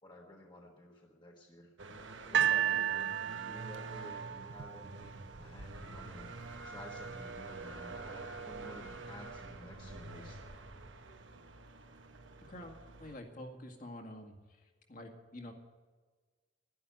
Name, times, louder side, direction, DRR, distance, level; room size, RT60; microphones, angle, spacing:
voice 1, 0.0-1.7 2.2-6.3 6.6-10.4, left 1 dB, 25° left, -1 dB, 1.4 m, -52 dB
sound 1, 1.8-13.2, right 3 dB, 80° right, 1.4 m, -48 dB
sound 2, 2.3-5.5 6.3-6.4, right 9 dB, 55° right, 0.5 m, -33 dB
sound 3, 5.0-10.9, right 1 dB, 15° right, 1.2 m, -55 dB
voice 2, 12.4-14.4 14.9-15.5, left 1 dB, 40° left, 3 dB, 2.0 m, -47 dB
11.0 x 11.0 x 9.2 m, 1.4 s
head